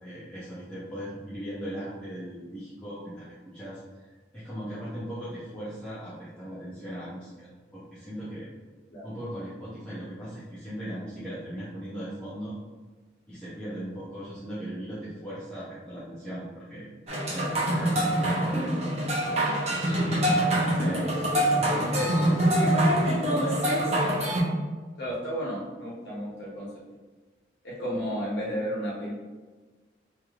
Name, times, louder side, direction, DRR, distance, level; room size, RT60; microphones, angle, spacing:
voice 1, 0.0-8.5 9.0-12.6 13.3-16.9 17.3-18.9 19.6-23.2, equal, 5° left, -12 dB, 0.6 m, -38 dB
sound 1, 17.1-24.4, right 1 dB, 35° right, 0.7 m, -25 dB
voice 2, 25.0-26.7 27.6-29.1, equal, 75° left, -7 dB, 1.0 m, -32 dB
3.1 x 2.9 x 2.4 m, 1.4 s
head